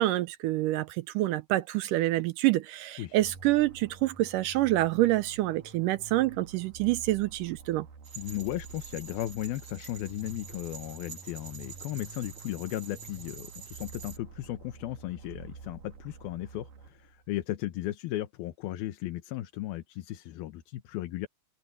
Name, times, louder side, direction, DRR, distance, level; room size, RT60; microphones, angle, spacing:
voice 1, 0.0-7.9, right 16 dB, 80° right, 1.9 m, -27 dB
sound 1, 3.2-17.3, right 5 dB, 60° right, 3.7 m, -49 dB
sound 2, 8.0-14.2, right 7 dB, 30° right, 7.4 m, -47 dB
voice 2, 8.2-21.3, left 15 dB, 80° left, 2.8 m, -36 dB
omnidirectional pair, 4.4 m